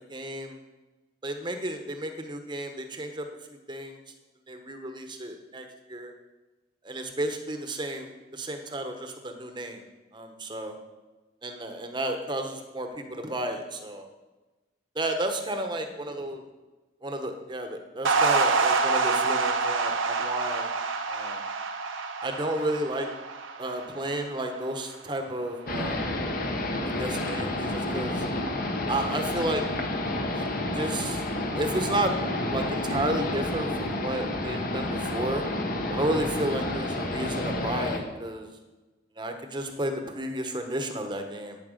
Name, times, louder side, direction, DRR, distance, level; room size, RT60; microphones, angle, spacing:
voice 1, 0.1-0.6 1.2-3.3 3.7-4.0 4.5-6.1 6.8-9.8 10.1-10.8 11.4-14.1 14.9-16.4 17.0-20.7 21.1-21.4 22.2-23.1 23.6-26.1 26.8-28.2 28.9-29.6 30.3-30.5 30.7-31.2 31.5-32.1 32.5-35.4 35.9-38.5 39.2-41.6, right 1 dB, 25° right, 5 dB, 1.0 m, -32 dB
sound 1, 18.0-24.5, right 4 dB, 85° right, 0.9 m, -27 dB
sound 2, 25.7-38.0, left 1 dB, 45° left, 1.2 m, -30 dB
9.4 x 8.9 x 6.5 m, 1.2 s
head